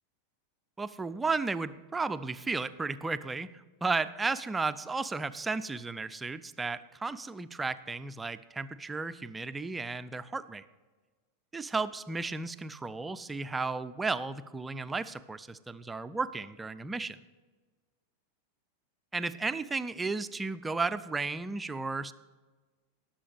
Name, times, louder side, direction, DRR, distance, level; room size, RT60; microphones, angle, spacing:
voice 1, 0.8-3.5 3.8-10.6 11.5-17.2 19.1-22.1, right 3 dB, 10° right, 13 dB, 0.4 m, -34 dB
19.5 x 7.4 x 3.5 m, 1.3 s
figure-of-eight pair, 90°, 0 cm